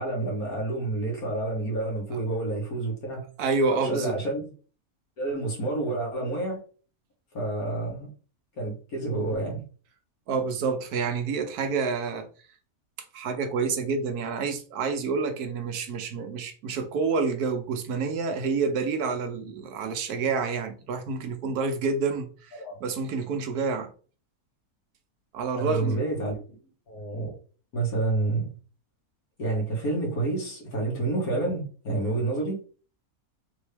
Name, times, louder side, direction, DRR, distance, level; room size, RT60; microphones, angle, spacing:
voice 1, 0.0-3.3 3.7-4.4 5.2-6.6 7.3-8.1 8.6-9.6 22.5-22.8 25.6-26.4 26.9-27.3 27.7-28.5 29.4-32.6, right 2 dB, 70° left, 2.1 m, -29 dB
voice 2, 3.4-4.2 10.3-12.3 13.1-23.9 25.3-26.0, right 4 dB, 80° right, 1.3 m, -28 dB
4.4 x 3.0 x 3.4 m
omnidirectional pair, 1.6 m